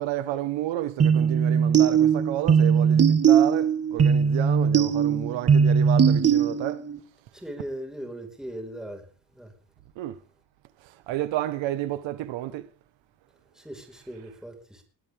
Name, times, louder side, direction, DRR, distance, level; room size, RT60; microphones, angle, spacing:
voice 1, 0.0-6.8 10.0-10.2 10.8-12.7, right 14 dB, 80° right, 1.5 m, -31 dB
sound 1, 1.0-7.0, right 7 dB, 35° right, 2.3 m, -20 dB
voice 2, 7.3-9.1 9.3-9.5 13.5-14.8, right 1 dB, ahead, 5.1 m, -38 dB
22.5 x 17.5 x 3.7 m
cardioid pair, 155°, 45 cm